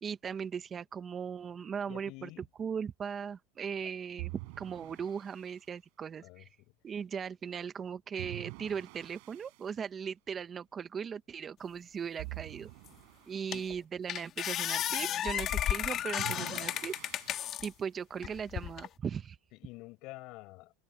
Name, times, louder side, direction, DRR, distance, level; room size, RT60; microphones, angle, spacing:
voice 1, 0.0-2.3 2.6-4.3 4.6-6.5 6.8-12.7 13.3-16.9 17.6-19.4, right 7 dB, 25° right, 1.1 m, -38 dB
voice 2, 1.9-2.5 6.2-6.7 13.5-13.6 19.5-20.7, left 23 dB, 55° left, 6.2 m, -49 dB
sound 1, 4.2-5.6 8.2-9.7 12.2-13.5 16.2-17.7, right 33 dB, 65° right, 5.1 m, -46 dB
sound 2, 12.9-13.0 13.5-13.8 14.1-17.7 18.2-18.9, left 11 dB, 40° left, 2.6 m, -33 dB
supercardioid pair, 130°, 0 cm